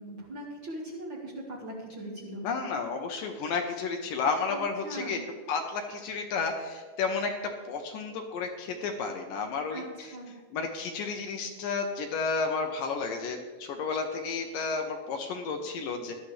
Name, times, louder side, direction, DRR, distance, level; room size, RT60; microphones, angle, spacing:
voice 1, 0.0-2.5 4.5-5.2 9.7-10.3, right 1 dB, 70° right, -3 dB, 1.1 m, -40 dB
voice 2, 2.4-5.2 5.5-10.1 10.5-16.1, left 4 dB, 75° left, 3 dB, 2.1 m, -32 dB
17.5 x 12.0 x 3.3 m, 1.4 s
omnidirectional pair, 5.0 m